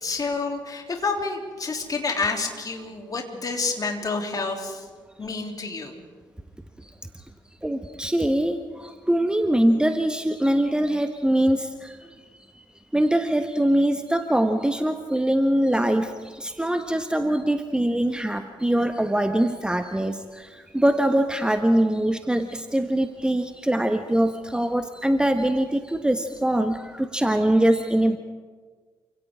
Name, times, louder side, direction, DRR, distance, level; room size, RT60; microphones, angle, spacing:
voice 1, 0.0-4.8 5.2-6.0, left 4 dB, 35° left, 2 dB, 3.4 m, -29 dB
voice 2, 7.6-12.1 12.9-28.2, right 1 dB, 10° right, 8 dB, 1.4 m, -23 dB
29.0 x 26.0 x 3.8 m, 1.5 s
figure-of-eight pair, 40°, 11 cm